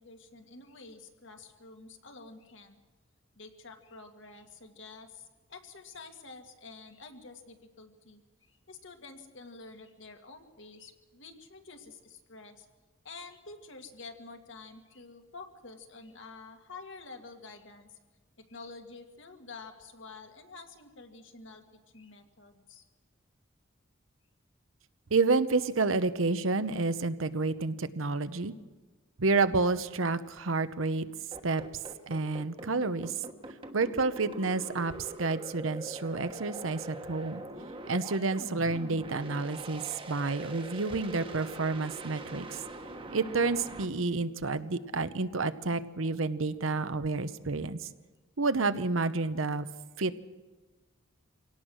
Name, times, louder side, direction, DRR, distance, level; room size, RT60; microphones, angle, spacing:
voice 1, 0.0-2.8 3.4-8.2 8.5-12.7 13.0-18.0 18.5-22.8, left 3 dB, 65° left, 5 dB, 2.0 m, -49 dB
voice 2, 25.1-28.5 29.2-31.1 31.4-31.6 32.1-33.1 33.7-37.4 37.9-42.6 43.1-47.9 48.4-49.7 50.0-50.2, right 3 dB, 75° right, 12 dB, 0.9 m, -29 dB
sound 1, 31.3-43.8, right 2 dB, 25° right, 1.2 m, -43 dB
24.5 x 17.5 x 6.3 m, 1.2 s
head